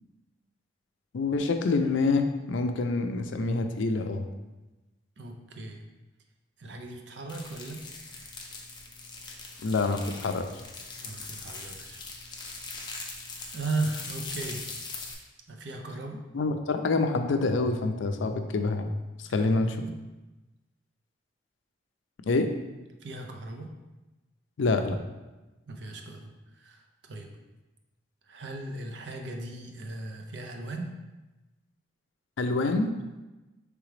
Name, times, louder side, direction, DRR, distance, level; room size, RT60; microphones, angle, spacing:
voice 1, 1.1-4.3 9.6-10.5 16.3-18.9 19.3-19.7 22.3-22.5 24.6-25.0 32.4-32.9, left 3 dB, 75° left, 7 dB, 0.4 m, -26 dB
voice 2, 5.2-5.8 6.6-7.8 11.0-12.0 12.5-12.9 13.5-14.7 15.5-16.2 19.4-19.9 23.0-23.7 25.7-27.3 28.3-30.9, right 2 dB, 65° right, 3 dB, 0.6 m, -37 dB
sound 1, 7.3-15.1, left 3 dB, 20° left, 0.5 m, -41 dB
4.8 x 3.4 x 3.2 m, 1.1 s
head